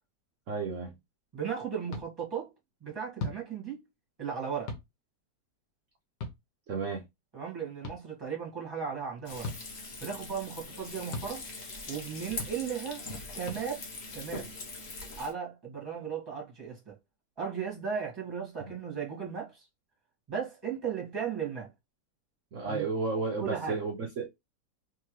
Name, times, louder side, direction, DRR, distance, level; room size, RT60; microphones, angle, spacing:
voice 1, 0.5-0.9 6.7-7.0 18.6-18.7 22.5-24.3, right 4 dB, 55° right, 1.1 m, -32 dB
voice 2, 1.3-2.5 2.8-3.8 4.2-4.7 7.3-9.5 10.0-11.4 11.9-13.1 13.3-13.8 14.1-14.5 15.2-17.0 17.4-19.7 20.3-21.7 22.6-22.9 23.4-23.8, right 7 dB, 15° right, 1.7 m, -36 dB
sound 1, 1.9-2.1 3.2-3.4 4.7-4.9 6.2-6.4 7.8-8.0 9.4-9.6 11.1-11.3 12.4-12.5 13.5-13.6, left 3 dB, 85° left, 1.7 m, -36 dB
Frying (food), 9.3-15.3, left 3 dB, 40° left, 1.2 m, -42 dB
3.6 x 3.4 x 3.1 m
omnidirectional pair, 1.8 m